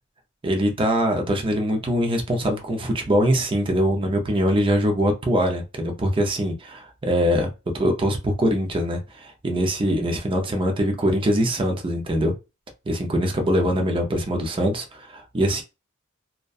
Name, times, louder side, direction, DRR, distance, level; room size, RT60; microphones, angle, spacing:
voice 1, 0.4-7.5 7.7-12.3 12.9-15.6, equal, 25° right, 0.5 m, -23 dB
2.5 x 2.1 x 2.3 m
head